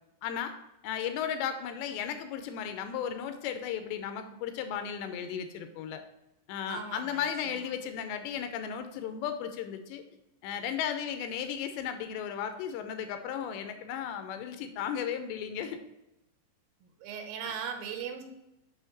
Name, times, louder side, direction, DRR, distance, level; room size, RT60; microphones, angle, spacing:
voice 1, 0.2-0.6 0.8-6.0 6.5-10.0 10.4-15.8 17.4-17.5, left 8 dB, 85° left, 8 dB, 2.8 m, -35 dB
voice 2, 6.7-7.5 16.8-18.2, right 7 dB, 85° right, 5 dB, 3.1 m, -39 dB
7.8 x 6.2 x 3.0 m, 0.91 s
omnidirectional pair, 5.1 m